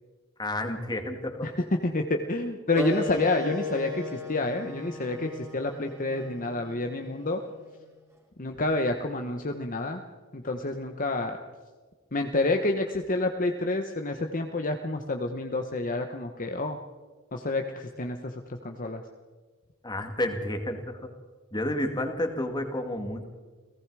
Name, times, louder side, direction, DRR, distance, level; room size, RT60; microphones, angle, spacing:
voice 1, 0.4-1.5 19.8-21.1 21.5-23.2, left 1 dB, 20° left, 5 dB, 2.2 m, -30 dB
voice 2, 1.4-7.4 8.4-10.0 10.3-11.3 12.1-16.8 17.3-19.0, left 2 dB, 40° left, 4 dB, 1.1 m, -29 dB
Wind instrument woodwind instrument, 2.7-7.9, left 2 dB, 15° right, 3.7 m, -38 dB
29.5 x 18.0 x 4.9 m, 1.4 s
head